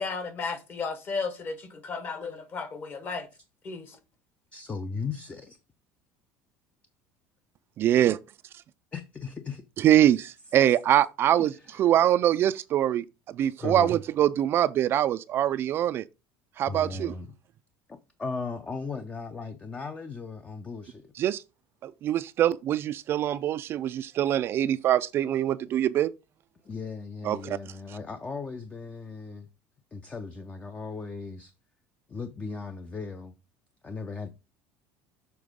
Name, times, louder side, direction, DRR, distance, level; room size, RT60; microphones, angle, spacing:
voice 1, 0.0-3.3 3.6-4.0, left 4 dB, 35° left, 1.1 m, -34 dB
voice 2, 4.5-5.6 8.9-9.6 11.3-11.5 13.6-13.9 16.7-17.3 17.9-21.1 26.6-29.5 29.9-31.5 32.1-33.3 33.8-34.3, left 4 dB, 20° left, 0.5 m, -37 dB
voice 3, 7.8-8.2 9.8-16.1 16.6-17.2 21.2-21.4 21.8-26.1 27.2-27.6, right 11 dB, 40° right, 0.3 m, -24 dB
6.9 x 3.6 x 5.0 m
cardioid pair, 145°, 6 cm